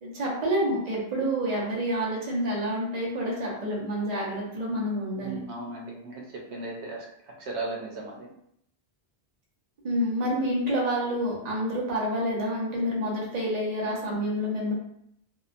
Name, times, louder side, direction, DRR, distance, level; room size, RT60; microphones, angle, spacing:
voice 1, 0.0-5.4 9.8-14.7, equal, 45° right, -4 dB, 0.8 m, -28 dB
voice 2, 5.1-6.2 6.5-7.1 7.4-8.3, right 2 dB, 90° right, -1 dB, 0.9 m, -36 dB
2.7 x 2.3 x 2.4 m, 0.71 s
omnidirectional pair, 1.1 m